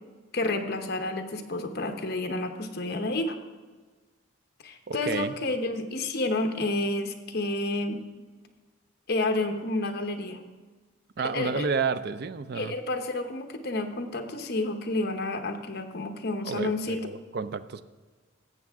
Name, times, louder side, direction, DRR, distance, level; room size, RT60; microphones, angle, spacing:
voice 1, 0.3-3.4 4.6-8.0 9.1-10.4 11.2-11.7 12.5-17.0, left 2 dB, 50° left, 6 dB, 0.9 m, -30 dB
voice 2, 4.9-5.3 11.2-12.7 16.5-17.8, right 5 dB, 50° right, 12 dB, 0.4 m, -30 dB
15.0 x 7.5 x 3.6 m, 1.4 s
head